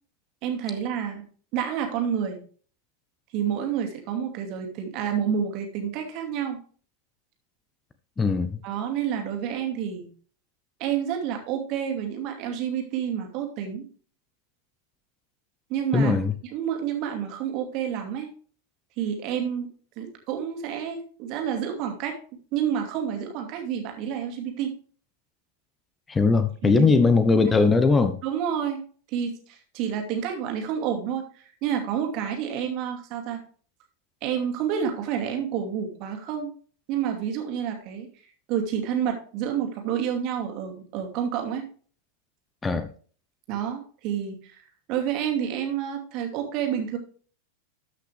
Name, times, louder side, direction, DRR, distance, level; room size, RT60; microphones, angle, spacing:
voice 1, 0.4-1.2 1.5-2.4 3.3-6.6 8.6-10.1 10.8-13.8 15.7-16.2 16.5-18.3 19.0-19.7 20.0-22.2 22.5-24.7 26.3-27.0 28.2-28.8 29.1-33.4 34.2-36.5 36.9-38.1 38.5-41.6 43.5-44.6 44.9-47.0, right 8 dB, 40° right, 2.3 m, -29 dB
voice 2, 8.2-8.6 15.9-16.3 26.1-28.2 42.6-42.9, left 4 dB, 15° left, 0.7 m, -20 dB
13.0 x 5.9 x 3.3 m
figure-of-eight pair, 90°, 0 cm